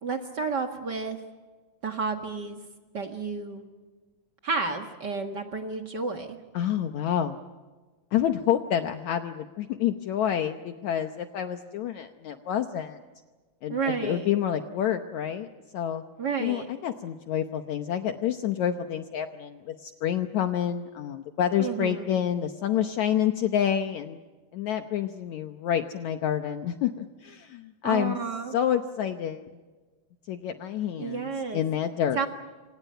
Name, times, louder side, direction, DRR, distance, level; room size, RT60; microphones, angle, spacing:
voice 1, 0.0-1.2 1.8-2.6 2.9-3.6 4.4-6.4 13.7-14.3 16.2-16.7 21.6-22.1 27.8-28.6 31.0-31.6 32.1-32.3, right 4 dB, 40° right, 5 dB, 1.6 m, -31 dB
voice 2, 6.5-7.4 8.1-13.0 13.6-15.5 15.7-16.0 16.4-24.2 24.5-28.2 28.5-29.4 30.3-32.2, left 10 dB, 70° left, 7 dB, 1.9 m, -28 dB
28.0 x 26.0 x 5.7 m, 1.3 s
omnidirectional pair, 4.0 m